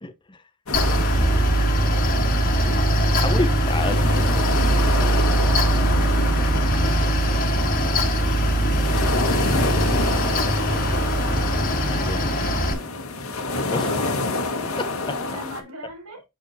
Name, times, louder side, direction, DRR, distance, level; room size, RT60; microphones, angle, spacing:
voice 1, 0.0-0.4 3.2-4.4 4.7-5.0 12.1-12.2 13.7-14.4 14.8-15.2, left 2 dB, 20° left, 0.9 m, -30 dB
sound 1, 0.7-15.6, left 2 dB, 90° left, 1.7 m, -28 dB
Mechanical fan, 0.7-12.7, right 1 dB, 40° left, 1.8 m, -21 dB
voice 2, 1.1-2.8 5.8-6.3 10.2-11.6 11.9-12.8 15.2-16.2, equal, 85° right, 4.0 m, -41 dB
7.3 x 6.6 x 2.7 m
head